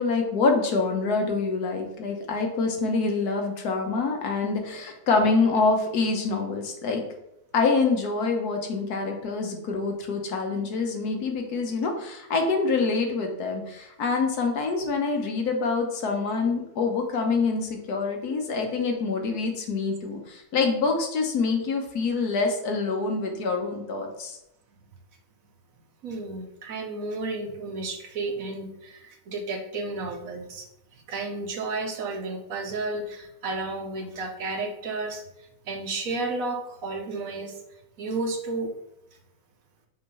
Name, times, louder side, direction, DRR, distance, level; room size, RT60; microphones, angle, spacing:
voice 1, 0.0-7.0 7.5-24.4, left 4 dB, 85° left, 3 dB, 1.5 m, -26 dB
voice 2, 26.0-30.7 31.1-35.2 35.6-37.6 38.0-38.7, right 3 dB, 65° right, 3 dB, 1.3 m, -32 dB
5.8 x 3.1 x 5.4 m, 0.82 s
omnidirectional pair, 1.6 m